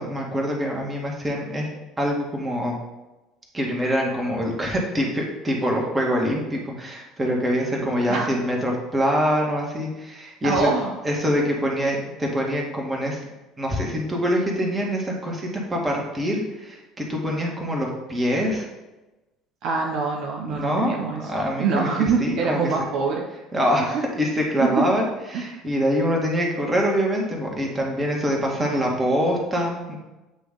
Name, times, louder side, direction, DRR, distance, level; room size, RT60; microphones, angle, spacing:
voice 1, 0.0-1.7 2.0-2.8 3.5-10.7 11.0-13.2 13.6-18.7 20.6-21.0 21.3-22.7 23.5-29.9, equal, 20° right, -1 dB, 1.8 m, -24 dB
voice 2, 10.4-10.9 19.6-21.3 21.6-23.2 23.9-24.0 24.6-24.8 25.3-25.4 28.6-28.9, right 5 dB, 60° right, 0 dB, 0.7 m, -24 dB
8.1 x 3.1 x 3.8 m, 1.1 s
hypercardioid pair, 60°, 0 cm